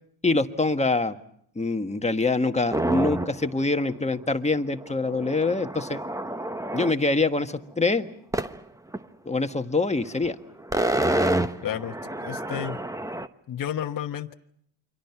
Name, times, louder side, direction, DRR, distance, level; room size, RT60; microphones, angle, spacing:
voice 1, 0.2-1.2 1.5-6.0 6.7-8.1 9.2-10.4, left 3 dB, 15° left, 7 dB, 1.5 m, -25 dB
sound 1, 2.7-3.5 3.8-3.9 4.1-6.9 8.3-8.6 8.9-9.0 10.1-10.3 10.6-13.3, right 1 dB, 5° right, 1.1 m, -28 dB
voice 2, 11.6-12.8 13.5-14.3, left 10 dB, 45° left, 4 dB, 1.3 m, -32 dB
29.0 x 24.5 x 5.8 m, 0.67 s
supercardioid pair, 85°, 48 cm